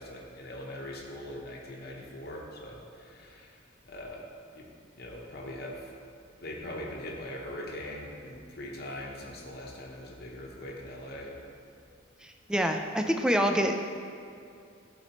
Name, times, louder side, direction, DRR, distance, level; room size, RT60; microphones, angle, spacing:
voice 1, 0.0-4.2 4.5-4.7 5.0-5.9 6.4-11.4, left 1 dB, 55° left, -2 dB, 0.9 m, -41 dB
voice 2, 12.2-13.7, equal, 5° right, 4 dB, 0.3 m, -26 dB
12.0 x 4.3 x 2.9 m, 2.5 s
head